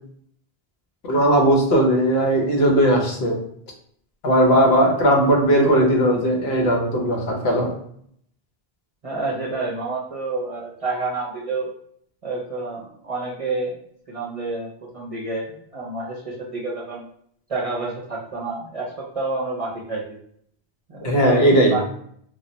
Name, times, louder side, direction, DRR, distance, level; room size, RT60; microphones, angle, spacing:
voice 1, 1.1-3.3 4.2-7.7 21.0-21.8, right 1 dB, 80° left, 0 dB, 1.0 m, -18 dB
voice 2, 9.0-11.7 12.2-13.7 14.1-14.7 14.9-17.0 17.5-20.0 20.9-21.8, right 3 dB, 40° right, -4 dB, 0.6 m, -29 dB
2.3 x 2.1 x 3.8 m, 0.66 s
omnidirectional pair, 1.0 m